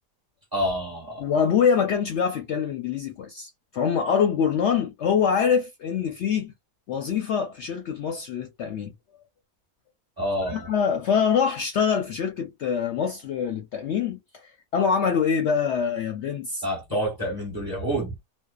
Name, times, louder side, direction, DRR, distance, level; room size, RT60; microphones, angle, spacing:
voice 1, 0.5-1.2 10.2-10.7 16.6-18.1, equal, 15° right, 1.1 m, -28 dB
voice 2, 1.2-6.5 6.9-8.9 10.4-16.6, left 7 dB, 65° left, 0.7 m, -24 dB
2.6 x 2.1 x 2.3 m
omnidirectional pair, 1.5 m